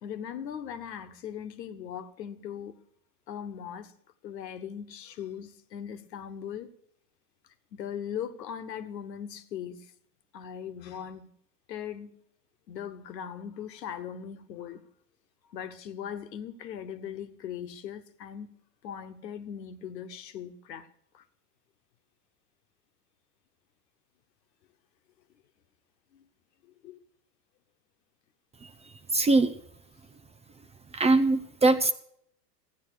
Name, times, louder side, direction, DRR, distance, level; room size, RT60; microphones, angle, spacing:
voice 1, 0.0-2.8 3.3-3.9 4.2-6.7 7.7-9.9 10.3-11.3 11.7-12.2 12.7-14.8 15.5-18.6 18.8-20.9 21.1-21.2 26.1-26.2 26.6-27.0, left 8 dB, 80° left, 1.4 m, -39 dB
voice 2, 29.1-29.5 30.9-31.9, right 3 dB, 15° right, 0.6 m, -22 dB
14.0 x 9.5 x 6.5 m
hypercardioid pair, 105°, 49 cm